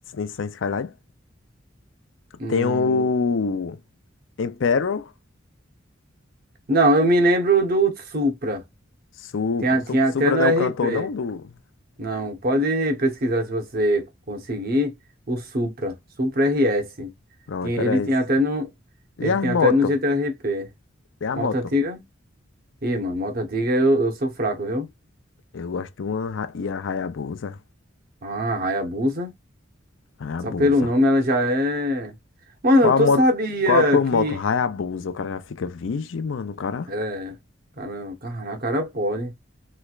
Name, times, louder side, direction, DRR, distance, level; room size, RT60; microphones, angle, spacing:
voice 1, 0.1-0.9 2.5-3.8 4.4-5.1 9.2-9.8 10.1-11.5 17.5-18.1 19.2-19.9 21.2-21.6 25.5-27.6 30.2-30.7 32.8-33.2 33.7-36.9, left 5 dB, 75° left, 0.5 m, -25 dB
voice 2, 2.4-3.1 6.7-8.6 9.6-11.1 12.0-14.9 15.3-17.1 17.6-18.7 19.2-20.7 21.3-22.0 22.8-24.9 28.2-29.3 30.4-32.1 32.6-34.4 36.9-37.3 37.8-39.3, equal, 50° right, 0.9 m, -22 dB
3.2 x 3.1 x 2.3 m
head